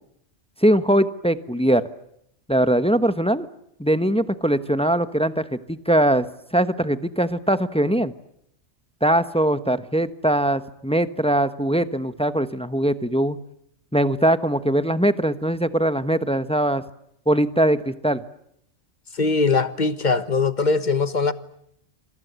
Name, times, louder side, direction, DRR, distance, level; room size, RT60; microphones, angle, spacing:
voice 1, 0.6-1.8 2.5-3.5 3.8-6.3 6.5-8.1 9.0-13.4 13.9-16.8 17.3-18.2, right 1 dB, 5° left, 1.0 m, -21 dB
voice 2, 19.1-21.3, left 4 dB, 40° left, 1.3 m, -21 dB
27.0 x 26.5 x 8.2 m
omnidirectional pair, 1.2 m